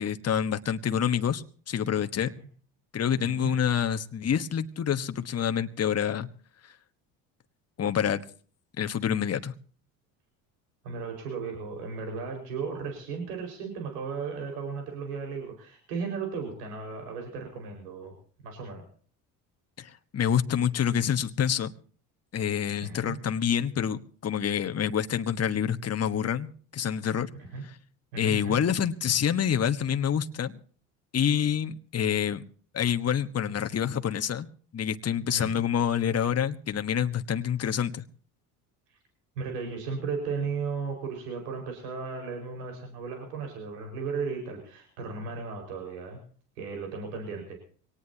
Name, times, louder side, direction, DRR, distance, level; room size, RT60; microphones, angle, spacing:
voice 1, 0.0-2.3 2.9-6.3 6.6-6.7 7.8-8.2 8.8-9.5 19.8-21.7 22.3-27.3 27.6-27.8 28.2-30.5 31.1-32.4 32.7-34.5 34.7-38.0, left 8 dB, 30° left, 8 dB, 1.3 m, -27 dB
voice 2, 3.2-3.6 10.8-18.1 18.4-18.8 22.8-23.2 27.5-27.6 28.1-28.6 35.3-35.6 39.4-46.2 46.6-47.6, right 5 dB, 80° right, 2 dB, 5.2 m, -35 dB
24.0 x 18.5 x 2.8 m, 0.43 s
hypercardioid pair, 65°, 47 cm